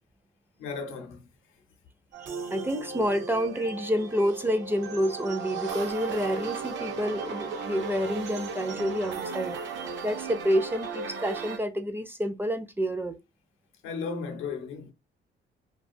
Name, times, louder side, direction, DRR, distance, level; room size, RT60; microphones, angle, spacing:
voice 1, 0.6-1.3 13.8-14.9, left 5 dB, 90° left, 0.6 m, -35 dB
sound 1, 2.1-11.6, right 5 dB, 65° right, 0.6 m, -36 dB
voice 2, 2.2-9.6 10.0-13.2, equal, 10° right, 0.4 m, -28 dB
2.4 x 2.3 x 2.4 m
cardioid pair, 90°, 20 cm